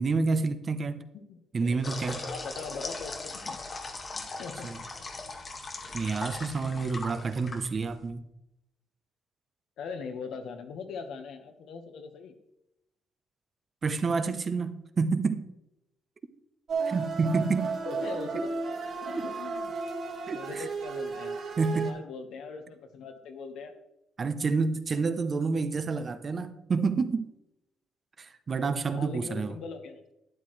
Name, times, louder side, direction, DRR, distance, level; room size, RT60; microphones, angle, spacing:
voice 1, 0.0-1.0 1.5-2.2 4.6-4.8 5.9-8.2 13.8-15.5 16.9-17.8 20.3-20.7 21.6-21.9 24.2-27.3 28.2-29.5, right 4 dB, 35° right, 0.7 m, -29 dB
voice 2, 1.1-2.0 2.3-3.6 4.1-5.0 9.8-12.3 17.8-18.5 19.0-19.7 20.3-21.4 21.7-23.7 28.9-30.0, left 5 dB, 75° left, 1.3 m, -41 dB
sound 1, 1.8-8.1, left 3 dB, 30° left, 1.2 m, -39 dB
sound 2, 16.7-21.9, right 4 dB, 50° right, 2.0 m, -33 dB
12.0 x 9.7 x 3.2 m
cardioid pair, 120°, 0 cm